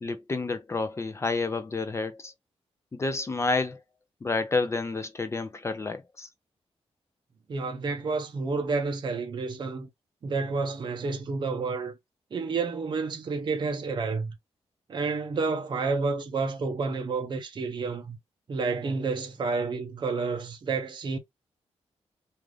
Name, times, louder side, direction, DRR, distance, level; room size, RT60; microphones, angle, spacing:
voice 1, 0.0-2.3 2.9-3.8 4.2-6.3, left 3 dB, 25° left, 0.4 m, -29 dB
voice 2, 7.5-9.9 10.2-12.0 12.3-14.4 14.9-18.2 18.5-21.2, right 4 dB, 45° right, 0.6 m, -30 dB
2.5 x 2.4 x 3.2 m
wide cardioid pair, 160°, 11 cm